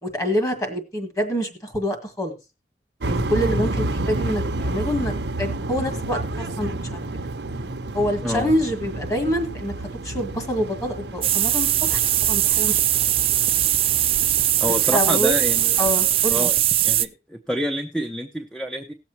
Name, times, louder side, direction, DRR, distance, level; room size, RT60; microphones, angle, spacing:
voice 1, 0.0-2.4 3.0-5.1 5.4-7.0 7.9-12.8 14.9-15.3 15.8-16.5, equal, 20° left, 6 dB, 1.9 m, -26 dB
sound 1, 3.0-16.3, right 2 dB, 75° right, 0.8 m, -30 dB
sound 2, 11.2-17.1, right 12 dB, 30° right, 0.4 m, -20 dB
voice 2, 14.6-15.9 16.3-16.5 16.8-18.9, equal, 5° left, 5 dB, 0.7 m, -28 dB
18.5 x 7.2 x 2.9 m, 0.28 s
head